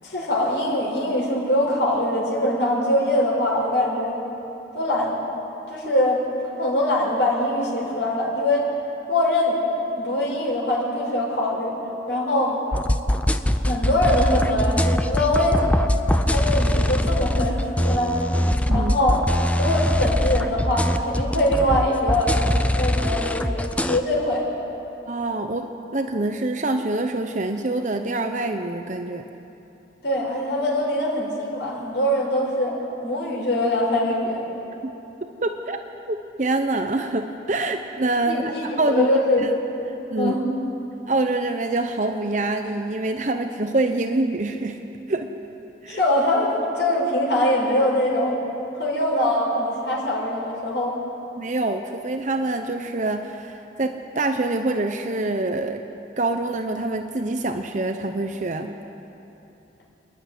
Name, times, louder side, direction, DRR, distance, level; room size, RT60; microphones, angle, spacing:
voice 1, 0.0-4.2 4.7-5.2 5.7-8.7 9.1-9.6 9.9-11.7 12.1-12.6 13.6-15.9 16.2-18.3 18.7-19.2 19.6-22.3 22.8-24.5 30.0-32.8 33.0-34.4 38.2-39.5 40.1-40.4 45.9-48.4 48.8-51.0, left 1 dB, 80° left, -3 dB, 5.8 m, -23 dB
sound 1, 12.7-24.0, left 1 dB, 10° left, 0.5 m, -22 dB
voice 2, 25.1-25.7 25.9-29.2 34.8-34.9 35.4-35.8 36.1-39.5 40.1-40.4 41.1-44.8 45.1-45.3 45.8-46.0 51.4-55.8 56.2-58.8, right 2 dB, 40° right, 6 dB, 0.8 m, -25 dB
28.0 x 10.5 x 9.5 m, 3.0 s
head